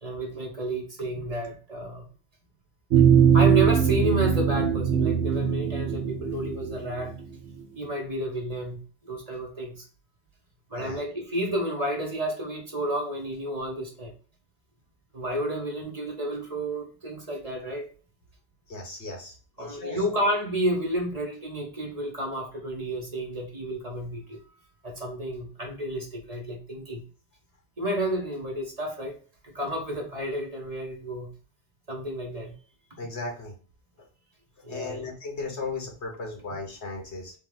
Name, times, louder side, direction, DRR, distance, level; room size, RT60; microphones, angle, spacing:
voice 1, 0.0-2.1 3.3-7.1 7.8-9.9 10.7-14.1 15.1-17.9 19.6-24.4 24.8-27.0 27.8-29.2 29.4-31.3 31.9-32.5 34.6-35.1, right 1 dB, 35° right, 1.3 m, -31 dB
sound 1, 2.9-7.4, right 8 dB, 80° right, 1.0 m, -21 dB
voice 2, 18.7-20.0 32.4-32.5 33.0-33.5 34.7-37.3, left 3 dB, 85° left, 1.8 m, -36 dB
4.1 x 2.8 x 3.9 m
omnidirectional pair, 1.1 m